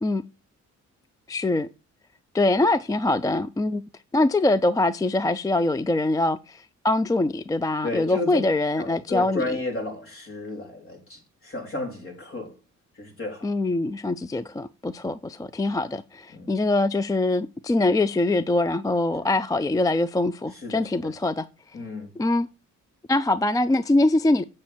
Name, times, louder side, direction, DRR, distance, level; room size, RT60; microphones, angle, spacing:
voice 1, 1.3-1.7 2.3-3.8 4.1-9.4 13.4-21.5 22.2-22.5 23.1-24.4, left 2 dB, 10° left, 0.3 m, -23 dB
voice 2, 7.8-8.4 8.8-12.6 13.0-13.5 16.3-16.5 20.5-21.1 21.7-22.1, left 2 dB, 45° left, 3.8 m, -33 dB
8.7 x 6.4 x 4.3 m
cardioid pair, 115°, 30 cm